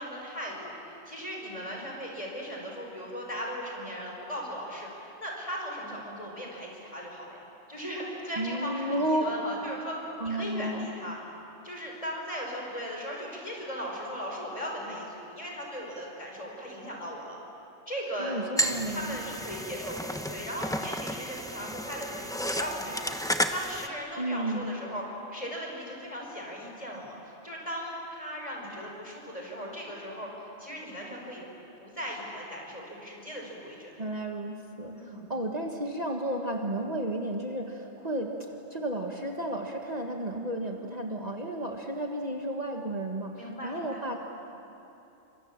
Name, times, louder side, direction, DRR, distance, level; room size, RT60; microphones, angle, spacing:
voice 1, 0.0-11.2 11.6-17.4 17.9-18.4 18.9-25.0 25.3-27.2 27.4-31.4 31.8-33.9 34.9-35.3 40.6-40.9 43.3-44.0, equal, 30° left, -1 dB, 5.7 m, -38 dB
voice 2, 8.4-9.3 10.2-10.9 18.2-19.2 24.2-24.8 34.0-44.2, right 1 dB, 35° right, 2 dB, 1.7 m, -32 dB
sound 1, 18.6-23.9, equal, 5° left, 0.9 m, -32 dB
29.5 x 25.5 x 7.5 m, 2.9 s
omnidirectional pair, 1.1 m